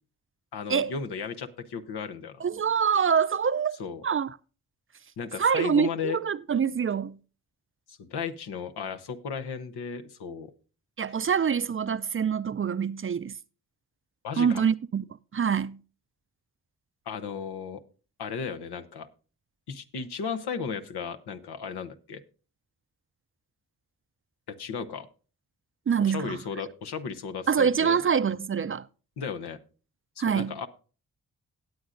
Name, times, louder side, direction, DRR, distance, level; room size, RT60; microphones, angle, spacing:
voice 1, 0.5-2.4 3.8-4.0 5.2-6.2 8.0-10.5 14.2-14.6 17.1-17.8 18.2-19.1 19.7-22.2 24.5-25.1 26.0-28.0 29.2-29.6 30.2-30.7, left 6 dB, 85° left, 0.9 m, -35 dB
voice 2, 2.4-3.8 4.0-4.4 5.4-7.2 11.0-13.4 14.4-15.0 15.3-15.8 25.9-26.4 27.5-28.9 30.2-30.6, right 7 dB, 35° right, 0.4 m, -25 dB
18.0 x 7.8 x 2.5 m
supercardioid pair, 40°, 38 cm